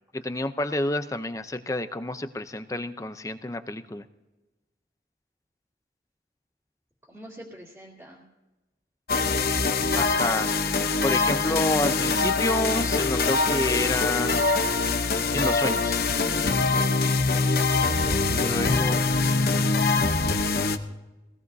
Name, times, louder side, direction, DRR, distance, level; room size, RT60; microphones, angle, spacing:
voice 1, 0.1-4.1 9.9-10.5 11.0-14.3 15.3-16.0 18.3-19.0, left 2 dB, 20° left, 10 dB, 0.6 m, -29 dB
voice 2, 7.1-8.2 10.0-10.6 18.4-19.0, right 1 dB, 15° right, -5 dB, 2.3 m, -45 dB
sound 1, 9.1-20.8, left 3 dB, 55° left, 0.9 m, -23 dB
22.5 x 17.5 x 2.7 m, 1.1 s
head